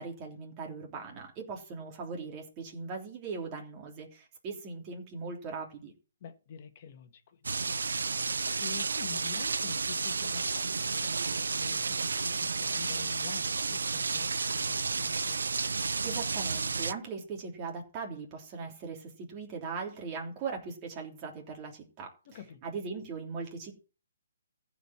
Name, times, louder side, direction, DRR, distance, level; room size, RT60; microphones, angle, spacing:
voice 1, 0.0-5.9 16.0-22.1 22.6-23.8, right 4 dB, 20° right, 3.2 m, -39 dB
voice 2, 6.2-15.4 22.3-22.7, left 7 dB, 35° left, 1.9 m, -48 dB
sound 1, 7.4-16.9, right 4 dB, 85° right, 0.8 m, -31 dB
15.0 x 5.2 x 7.4 m
hypercardioid pair, 165°, 0 cm